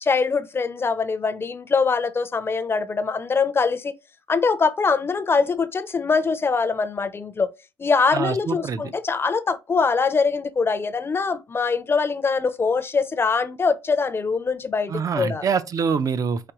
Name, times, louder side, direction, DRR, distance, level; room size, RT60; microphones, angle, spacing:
voice 1, 0.0-3.9 4.3-7.5 7.8-15.5, left 4 dB, 30° left, 0.5 m, -23 dB
voice 2, 8.1-8.8 14.9-16.5, right 6 dB, 45° right, 0.5 m, -25 dB
5.0 x 3.3 x 3.0 m
cardioid pair, 110°, 8 cm